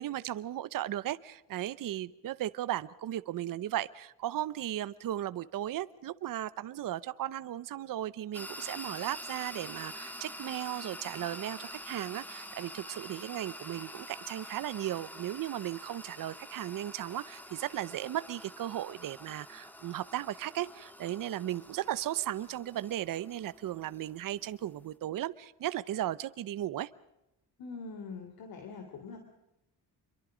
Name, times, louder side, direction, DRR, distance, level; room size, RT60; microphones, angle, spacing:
voice 1, 0.0-26.9, right 12 dB, 55° right, 16 dB, 0.8 m, -36 dB
sound 1, 8.3-25.0, equal, 5° left, 1.5 m, -47 dB
voice 2, 27.6-29.2, left 4 dB, 60° left, 5 dB, 3.3 m, -43 dB
27.0 x 23.0 x 5.1 m, 0.90 s
cardioid pair, 140°, 40 cm